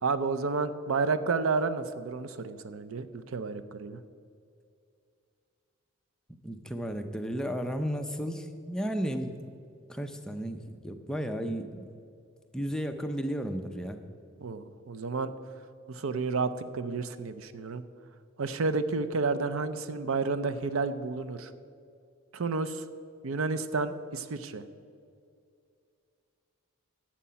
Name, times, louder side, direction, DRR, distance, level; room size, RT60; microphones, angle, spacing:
voice 1, 0.0-4.0 14.4-15.3 15.9-17.8 18.4-21.5 22.3-22.8 23.2-24.6, right 4 dB, 80° right, 12 dB, 0.6 m, -31 dB
voice 2, 6.4-9.3 9.9-11.8 12.5-14.0, equal, 5° left, 5 dB, 0.5 m, -33 dB
11.5 x 7.5 x 5.7 m, 2.4 s
head